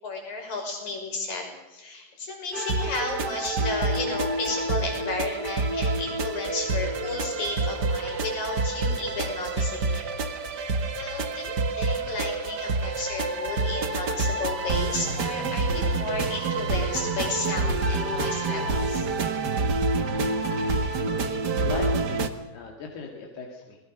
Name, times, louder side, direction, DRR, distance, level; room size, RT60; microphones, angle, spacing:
voice 1, 0.0-10.1 10.9-19.1, left 3 dB, 60° left, 2 dB, 7.6 m, -33 dB
sound 1, 2.5-22.3, right 3 dB, 65° right, 1.0 m, -27 dB
voice 2, 21.6-23.8, left 4 dB, 85° left, 1 dB, 4.5 m, -38 dB
28.0 x 20.5 x 6.6 m, 1.0 s
omnidirectional pair, 4.5 m